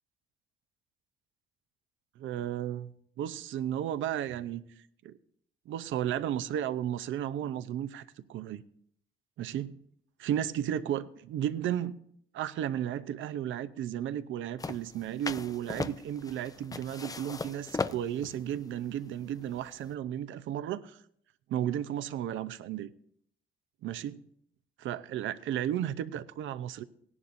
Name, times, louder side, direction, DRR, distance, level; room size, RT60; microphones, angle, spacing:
voice 1, 2.2-2.9 3.2-4.6 5.0-5.1 5.7-8.0 8.3-8.6 9.4-9.8 10.2-12.0 12.3-21.0 21.5-22.9 23.8-24.2 24.8-26.8, right 10 dB, 80° right, 0.6 m, -34 dB
sound 1, 14.6-19.9, left 4 dB, 20° left, 0.4 m, -38 dB
17.5 x 11.0 x 2.6 m
cardioid pair, 90°, 20 cm